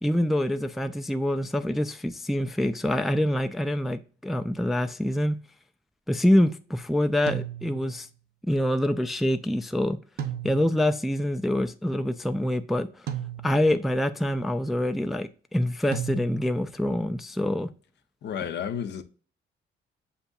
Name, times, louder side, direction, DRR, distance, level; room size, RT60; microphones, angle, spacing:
voice 1, 0.0-5.4 6.1-8.1 8.5-10.0 10.4-12.9 13.4-17.7, left 1 dB, ahead, 0.3 m, -25 dB
sound 1, 7.3-8.0 10.2-11.0 13.1-13.8 15.9-16.7, right 10 dB, 50° right, 0.6 m, -35 dB
voice 2, 18.2-19.0, left 8 dB, 60° left, 0.6 m, -31 dB
6.9 x 2.6 x 2.3 m
cardioid pair, 90°, 20 cm